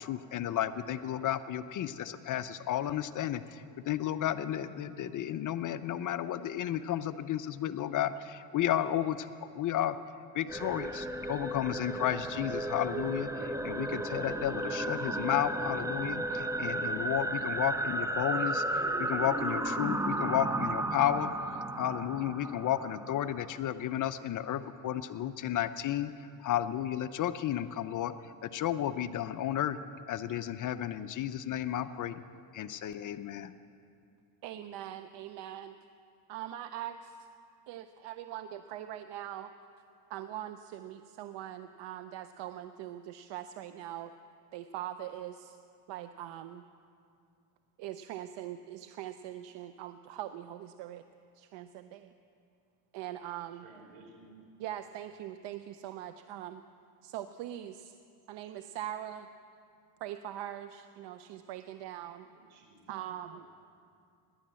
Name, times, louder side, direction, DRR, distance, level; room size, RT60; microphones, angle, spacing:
voice 1, 0.0-10.0 10.3-21.3 21.8-26.1 26.4-28.1 28.4-29.8 30.1-32.2 32.5-33.5, left 11 dB, 40° left, 12 dB, 0.6 m, -33 dB
sound 1, 10.5-23.6, right 2 dB, 5° right, 0.5 m, -34 dB
voice 2, 34.4-35.8 36.3-37.3 37.7-39.5 40.1-44.1 44.5-45.6 45.9-46.6 47.8-51.0 51.3-52.1 52.9-53.7 54.6-56.6 57.0-58.0 58.3-59.3 60.0-62.3 62.9-63.5, right 12 dB, 60° right, 10 dB, 0.7 m, -42 dB
voice 3, 53.6-54.4 62.1-62.2 62.5-62.8 63.3-63.5, right 3 dB, 75° right, 3 dB, 3.7 m, -56 dB
17.5 x 11.0 x 7.5 m, 2.4 s
cardioid pair, 110°, 49 cm